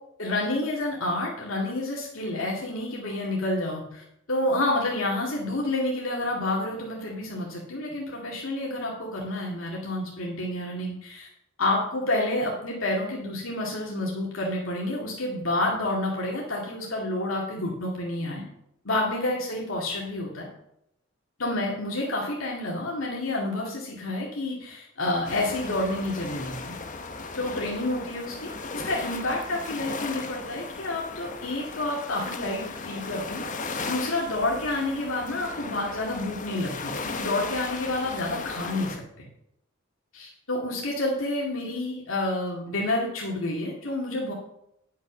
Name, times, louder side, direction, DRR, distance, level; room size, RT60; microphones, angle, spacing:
voice 1, 0.2-11.3 11.6-18.4 18.9-20.5 21.4-26.7 27.4-33.4 33.8-39.3 40.1-44.3, left 2 dB, 75° left, -3 dB, 2.2 m, -29 dB
sound 1, 25.2-39.0, left 4 dB, 40° left, 0.9 m, -36 dB
10.5 x 6.3 x 6.2 m, 0.78 s
head